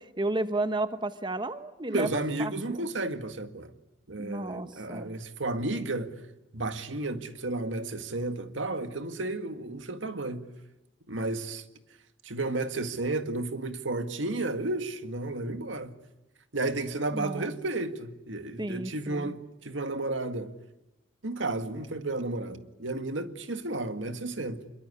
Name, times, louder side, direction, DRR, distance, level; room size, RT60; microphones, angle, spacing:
voice 1, 0.0-2.9 4.2-5.1 17.1-17.5 18.6-19.3, right 2 dB, 25° right, 1.1 m, -33 dB
voice 2, 1.9-3.7 4.1-6.1 6.5-10.4 11.1-11.6 12.2-15.9 16.5-20.5 21.2-24.7, right 2 dB, 85° right, 2.0 m, -32 dB
26.0 x 23.0 x 9.7 m
head